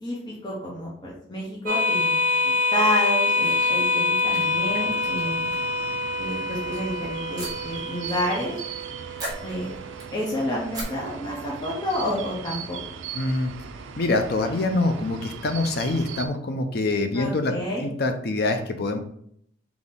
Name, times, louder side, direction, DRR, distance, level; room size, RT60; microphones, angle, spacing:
voice 1, 0.0-5.5 6.2-8.5 9.4-9.7 10.1-12.8 17.1-17.9, equal, 20° left, -6 dB, 0.8 m, -29 dB
sound 1, 1.7-10.6, left 2 dB, 45° right, 0.9 m, -26 dB
sound 2, 3.4-5.9 6.3-6.8 7.4-8.3 8.5-8.9 9.2-10.3 10.7-10.9, right 1 dB, 20° right, 1.3 m, -39 dB
sound 3, 4.4-16.3, right 6 dB, 85° right, 0.4 m, -39 dB
voice 2, 13.1-13.5 14.0-19.0, left 2 dB, 55° left, 6 dB, 0.5 m, -25 dB
4.1 x 2.9 x 3.6 m, 0.67 s
head